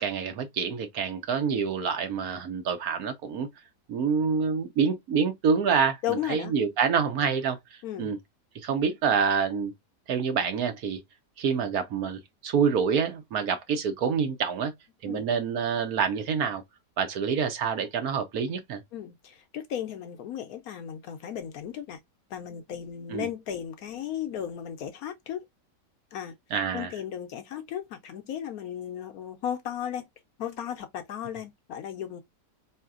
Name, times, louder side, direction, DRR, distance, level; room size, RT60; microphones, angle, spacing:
voice 1, 0.0-3.5 3.9-7.6 8.0-8.2 8.6-9.7 10.1-11.0 11.4-14.7 15.0-16.6 17.0-18.8 23.1-23.3 26.5-26.9, right 6 dB, 65° right, 1.2 m, -27 dB
voice 2, 6.0-6.5 7.8-8.1 15.0-15.2 18.9-22.0 22.3-25.5 26.1-26.4 26.7-30.1 30.4-32.2, left 10 dB, 70° left, 0.9 m, -35 dB
4.3 x 3.1 x 2.4 m
omnidirectional pair, 1.8 m